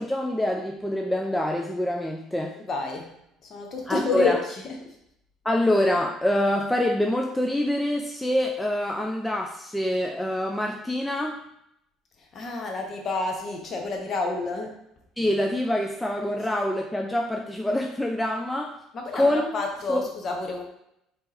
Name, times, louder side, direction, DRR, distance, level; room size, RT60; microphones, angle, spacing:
voice 1, 0.0-2.5 3.9-4.4 5.5-11.4 15.2-18.7 19.1-19.5 19.9-20.0, left 1 dB, 5° left, 1 dB, 0.3 m, -25 dB
voice 2, 2.6-3.2 3.4-5.0 12.2-14.7 18.9-20.6, left 3 dB, 40° left, 2 dB, 0.7 m, -29 dB
3.6 x 2.7 x 2.7 m, 0.77 s
figure-of-eight pair, 55°, 0 cm